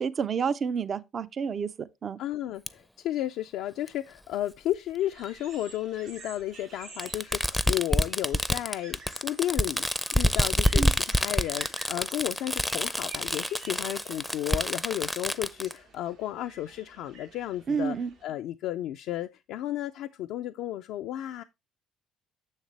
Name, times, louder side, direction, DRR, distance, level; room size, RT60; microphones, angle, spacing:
voice 1, 0.0-2.2 10.8-10.9 17.7-18.1, right 6 dB, 50° right, 0.5 m, -29 dB
voice 2, 2.2-9.9 10.1-18.0 18.2-21.4, left 13 dB, 75° left, 0.3 m, -33 dB
Fireworks, 2.7-2.8 3.9-4.0 5.2-5.3 7.0-15.7, equal, 5° left, 0.5 m, -27 dB
sound 1, 5.0-18.2, right 4 dB, 85° right, 3.1 m, -51 dB
6.7 x 6.5 x 3.2 m
supercardioid pair, 65°, 0 cm